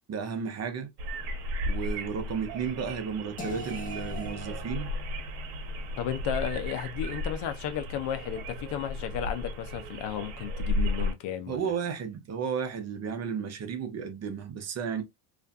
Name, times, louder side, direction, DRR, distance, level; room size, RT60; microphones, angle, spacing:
voice 1, 0.1-0.9 1.6-4.9 11.5-15.0, right 6 dB, 35° right, 0.6 m, -33 dB
sound 1, 1.0-11.1, left 1 dB, 90° right, 0.8 m, -34 dB
sound 2, 3.4-9.3, left 3 dB, 20° left, 0.5 m, -47 dB
voice 2, 6.0-11.7, left 9 dB, 60° left, 0.7 m, -33 dB
2.5 x 2.5 x 2.2 m
cardioid pair, 120°, 48 cm